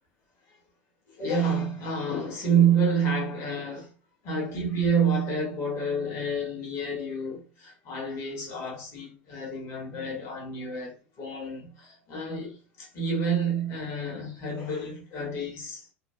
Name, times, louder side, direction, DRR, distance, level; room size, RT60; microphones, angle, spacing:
voice 1, 1.1-3.9 4.2-15.8, right 4 dB, 40° left, 1.2 m, -28 dB
3.1 x 2.2 x 2.2 m
figure-of-eight pair, 75°, 7 cm